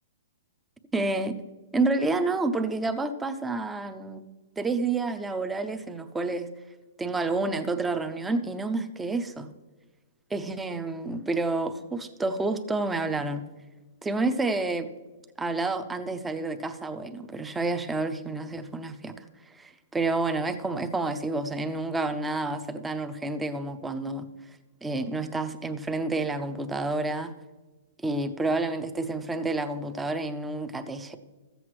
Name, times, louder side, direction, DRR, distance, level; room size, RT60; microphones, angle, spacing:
voice 1, 0.9-1.4 1.7-4.2 4.6-6.5 7.0-9.5 10.3-13.4 14.0-14.9 15.4-19.1 19.5-24.3 24.8-27.3 28.0-31.1, right 3 dB, 10° right, 8 dB, 0.6 m, -29 dB
14.0 x 7.8 x 3.1 m, 1.2 s
hypercardioid pair, 145°, 0 cm